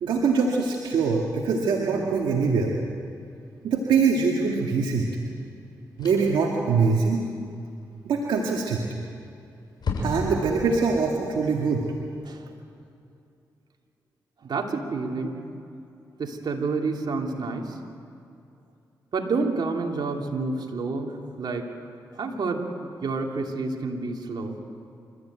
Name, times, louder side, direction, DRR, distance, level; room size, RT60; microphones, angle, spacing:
voice 1, 0.0-2.7 3.6-5.1 6.0-7.2 8.1-8.8 10.0-11.8, right 4 dB, 80° right, -1 dB, 2.0 m, -23 dB
sound 1, 4.6-4.8 6.0-6.5 8.5-9.0 9.3-9.4 9.8-10.6, left 3 dB, 65° left, 6.9 m, -31 dB
voice 2, 14.4-15.4 16.2-17.8 19.1-21.7 22.1-22.7 23.0-24.6, right 3 dB, 65° right, 2 dB, 2.8 m, -29 dB
28.0 x 13.5 x 9.2 m, 2.5 s
supercardioid pair, 45°, 8 cm